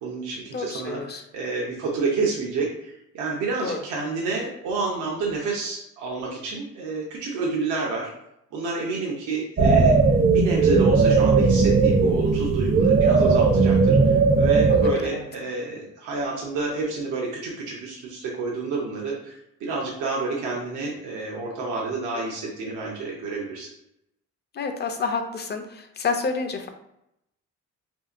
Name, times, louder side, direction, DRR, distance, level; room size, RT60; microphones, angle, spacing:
voice 1, 0.0-8.1 8.5-10.0 10.3-23.7, right 3 dB, 85° right, -3 dB, 0.7 m, -29 dB
voice 2, 0.5-1.2 3.6-3.8 14.7-15.2 24.5-26.7, left 4 dB, 35° left, 6 dB, 0.4 m, -29 dB
sound 1, 9.6-14.9, right 4 dB, 35° right, 0.4 m, -18 dB
2.8 x 2.7 x 2.4 m, 0.81 s
cardioid pair, 90°, 30 cm